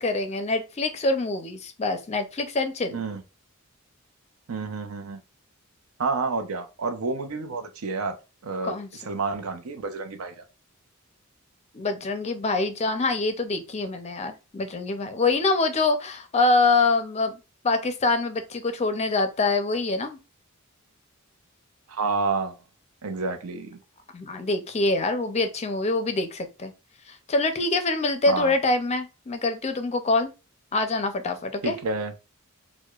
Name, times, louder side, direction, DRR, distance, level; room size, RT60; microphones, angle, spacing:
voice 1, 0.0-3.0 8.6-8.9 11.7-17.4 17.6-20.2 24.1-26.7 27.1-30.3 30.7-31.8, left 3 dB, 30° left, 0.5 m, -25 dB
voice 2, 2.9-3.2 4.5-5.2 6.0-8.2 8.4-8.8 9.0-10.4 21.9-22.6 23.0-23.8 28.3-28.5 31.6-32.1, right 4 dB, 75° right, 0.6 m, -29 dB
4.6 x 2.1 x 2.3 m
head